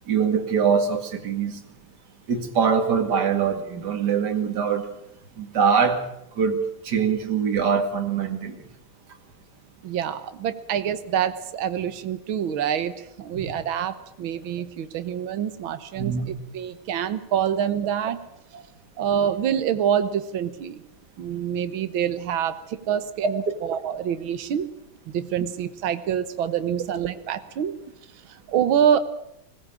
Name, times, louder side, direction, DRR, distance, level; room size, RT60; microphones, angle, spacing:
voice 1, 0.1-1.6 2.3-4.9 5.4-6.0 6.4-8.6 13.4-13.5 16.0-16.3, right 6 dB, 55° right, 5 dB, 2.7 m, -23 dB
voice 2, 9.8-18.2 19.0-20.8 21.2-24.7 25.1-27.8 28.3-29.0, right 9 dB, 75° right, 11 dB, 2.0 m, -26 dB
21.0 x 18.5 x 8.8 m, 0.78 s
omnidirectional pair, 2.2 m